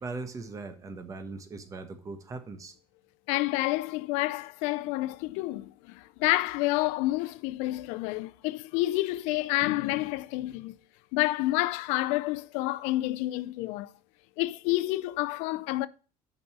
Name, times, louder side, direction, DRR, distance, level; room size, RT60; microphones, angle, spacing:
voice 1, 0.0-2.7, right 3 dB, 30° right, 1.2 m, -39 dB
voice 2, 3.3-10.8 11.1-13.9 14.4-15.9, left 18 dB, 80° left, 0.4 m, -29 dB
6.0 x 5.4 x 6.1 m
cardioid pair, 120°, 12 cm